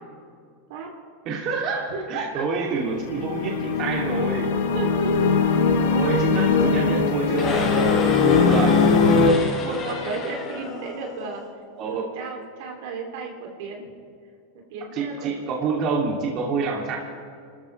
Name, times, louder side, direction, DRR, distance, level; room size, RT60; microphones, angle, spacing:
voice 1, 1.2-4.6 5.9-8.8 11.8-12.1 14.9-17.0, right 4 dB, 45° right, -1 dB, 2.8 m, -27 dB
voice 2, 1.9-2.6 4.7-5.3 6.0-6.6 8.2-8.4 9.0-11.4 11.8-13.9 14.5-15.3, right 4 dB, 65° right, 1 dB, 3.0 m, -34 dB
sound 1, 2.8-9.3, left 4 dB, 75° left, 1.7 m, -20 dB
sound 2, 7.4-11.5, left 3 dB, 35° left, 5.2 m, -31 dB
28.0 x 13.5 x 3.4 m, 2.2 s
hypercardioid pair, 115°, 0 cm